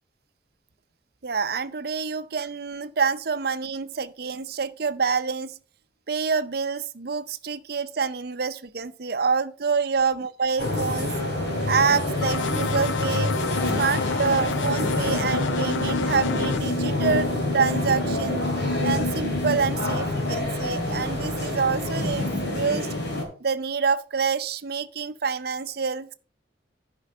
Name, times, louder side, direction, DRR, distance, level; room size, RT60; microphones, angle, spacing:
voice 1, 1.2-5.6 6.1-11.1 11.7-13.3 13.8-18.4 18.8-22.9 23.4-26.1, right 5 dB, 55° right, 0.6 m, -27 dB
sound 1, 10.6-23.2, left 1 dB, 55° left, 3.3 m, -26 dB
sound 2, 12.2-16.6, left 6 dB, 80° left, 0.5 m, -30 dB
10.0 x 5.3 x 5.2 m
head